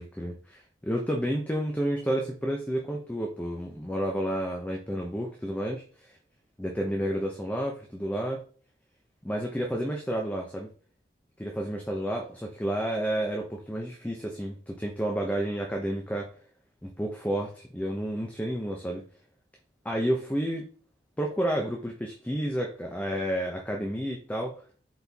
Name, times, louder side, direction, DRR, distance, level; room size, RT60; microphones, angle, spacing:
voice 1, 0.0-6.2 6.6-8.4 9.2-10.7 11.4-16.3 16.8-19.0 19.8-20.7 21.2-24.5, equal, 10° left, 0 dB, 0.9 m, -30 dB
8.2 x 4.4 x 3.6 m, 0.43 s
head